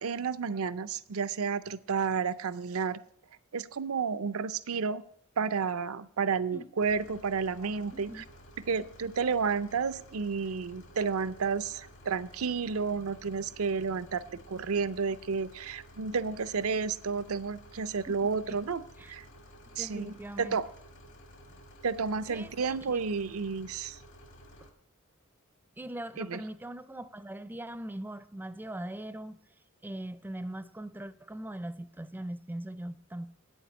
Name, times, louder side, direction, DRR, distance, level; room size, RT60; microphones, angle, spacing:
voice 1, 0.0-3.0 3.5-5.0 5.4-8.2 8.7-18.8 19.1-19.2 19.8-20.6 21.8-24.0 26.2-26.4, right 5 dB, 80° right, 14 dB, 0.6 m, -31 dB
sound 1, 6.8-24.7, equal, 65° left, 1.7 m, -53 dB
voice 2, 7.9-8.2 18.1-18.6 19.0-19.1 19.8-20.6 22.3-23.0 25.8-29.4 29.8-33.3, right 1 dB, 10° right, 14 dB, 0.5 m, -41 dB
8.7 x 7.2 x 8.5 m, 0.66 s
head